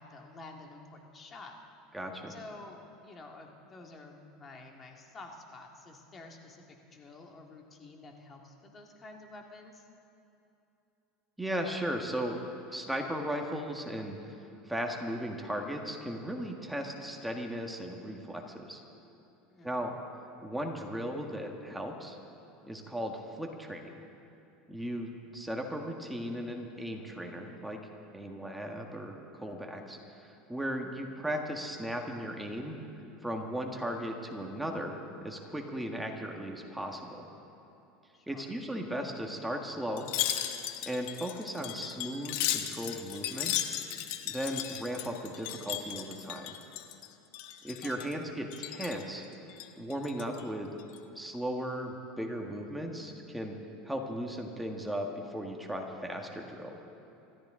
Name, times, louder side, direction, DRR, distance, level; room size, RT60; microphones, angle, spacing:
voice 1, 0.0-1.6 2.3-9.9 19.5-19.9 38.1-38.5 47.8-48.1, left 2 dB, 25° left, 2 dB, 2.0 m, -50 dB
voice 2, 1.9-2.3 11.4-12.4 12.7-18.8 19.6-19.9 20.4-22.2 22.6-23.9 24.7-27.8 28.1-32.8 33.2-37.3 38.3-40.1 40.8-43.7 44.2-46.5 47.6-49.2 49.8-50.7 51.1-53.6 53.8-56.8, equal, 5° right, 2 dB, 1.5 m, -36 dB
Wind chime, 40.0-47.1 47.3-48.1 48.5-49.0 49.5-50.4 50.8-51.0, left 12 dB, 70° left, 1.0 m, -36 dB
27.0 x 13.5 x 3.8 m, 2.9 s
supercardioid pair, 115°, 0 cm